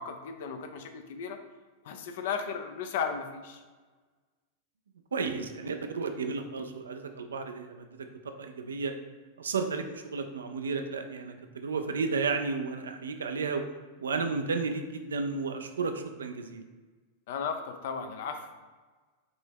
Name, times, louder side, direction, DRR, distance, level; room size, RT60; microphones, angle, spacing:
voice 1, 0.0-1.4 1.8-3.6 17.3-18.4, left 6 dB, 55° left, 6 dB, 0.5 m, -35 dB
voice 2, 5.1-8.9 9.4-13.6 14.0-16.6, right 4 dB, 70° right, 7 dB, 0.4 m, -33 dB
5.2 x 2.9 x 3.4 m, 1.3 s
figure-of-eight pair, 90°, 0 cm